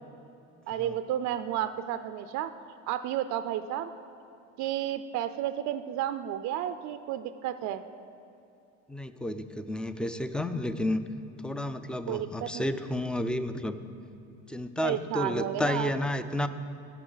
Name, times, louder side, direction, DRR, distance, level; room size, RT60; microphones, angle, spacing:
voice 1, 0.7-2.5 2.9-3.9 4.6-7.8 12.1-12.7 14.8-15.9, right 11 dB, 55° right, 11 dB, 0.5 m, -32 dB
voice 2, 8.9-11.0 11.4-13.8 14.5-16.5, left 1 dB, 5° left, 10 dB, 0.4 m, -31 dB
17.5 x 5.9 x 3.9 m, 2.7 s
supercardioid pair, 90°, 36 cm